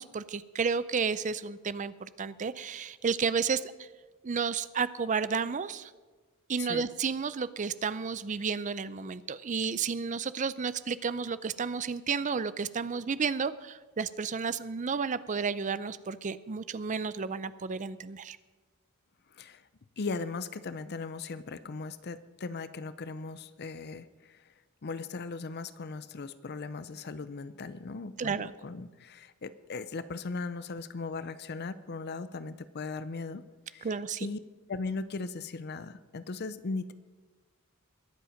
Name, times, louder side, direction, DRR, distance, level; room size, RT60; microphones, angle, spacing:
voice 1, 0.0-3.9 4.2-5.9 6.5-18.4 28.2-28.5 33.8-34.3, right 5 dB, 35° right, 16 dB, 0.5 m, -32 dB
voice 2, 19.3-19.6 20.0-24.4 24.8-33.4 33.7-33.9 34.2-34.4 34.7-36.9, left 4 dB, 45° left, 14 dB, 0.5 m, -38 dB
21.5 x 7.7 x 5.1 m, 1.4 s
head